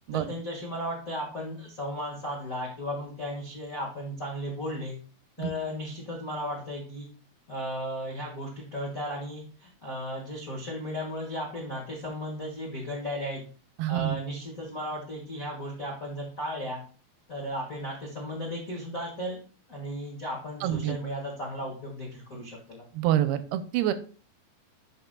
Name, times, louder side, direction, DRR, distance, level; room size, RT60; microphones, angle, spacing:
voice 1, 0.1-5.0 5.4-7.1 7.5-13.4 13.9-16.8 17.3-19.4 19.7-22.9, equal, 70° left, -3 dB, 0.7 m, -35 dB
voice 2, 13.8-14.2 20.6-21.0 22.9-23.9, right 12 dB, 85° right, 11 dB, 2.4 m, -27 dB
11.5 x 5.4 x 2.2 m, 0.40 s
omnidirectional pair, 4.6 m